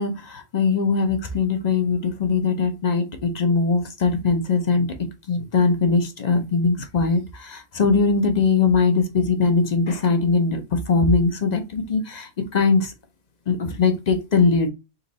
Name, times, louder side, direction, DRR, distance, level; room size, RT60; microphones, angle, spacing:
voice 1, 0.0-12.9 13.5-14.7, left 4 dB, 45° left, 0.6 m, -21 dB
4.0 x 2.5 x 3.9 m
omnidirectional pair, 1.3 m